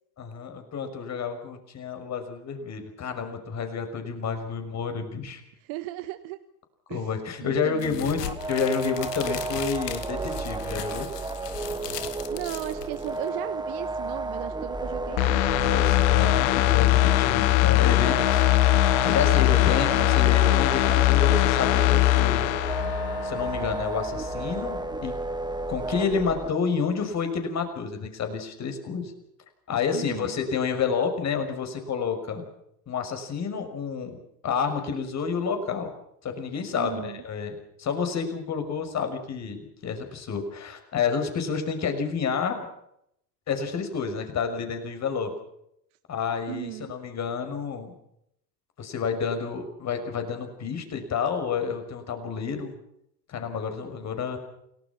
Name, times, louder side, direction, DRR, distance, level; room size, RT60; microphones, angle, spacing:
voice 1, 0.2-5.4 6.9-11.1 15.6-18.5 19.0-22.5 23.2-25.2 25.7-29.1 29.7-32.4 32.9-35.9 36.2-42.6 43.5-45.3 46.1-47.9 48.8-52.7 53.3-54.4, left 6 dB, 35° left, 7 dB, 6.1 m, -30 dB
voice 2, 5.6-6.4 6.9-8.1 12.3-15.4 29.9-30.4 36.7-37.2 46.5-47.0, right 17 dB, 50° right, 10 dB, 1.5 m, -36 dB
sound 1, 7.8-13.3, left 10 dB, 70° left, 2.5 m, -38 dB
sound 2, 8.2-26.5, right 2 dB, 10° right, 1.5 m, -33 dB
sound 3, 15.2-23.8 24.2-24.3, left 18 dB, 55° left, 1.5 m, -21 dB
29.0 x 19.0 x 5.9 m, 0.75 s
hypercardioid pair, 85°, 50 cm